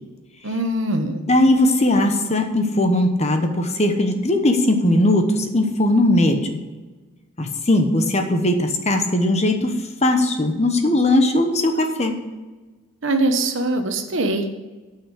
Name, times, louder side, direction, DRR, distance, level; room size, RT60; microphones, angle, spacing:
voice 1, 0.4-1.2 13.0-14.5, right 2 dB, 60° right, 6 dB, 1.1 m, -22 dB
voice 2, 1.3-6.6 7.4-9.7 10.0-12.2, left 1 dB, 30° left, 5 dB, 1.0 m, -19 dB
9.4 x 5.8 x 8.3 m, 1.2 s
head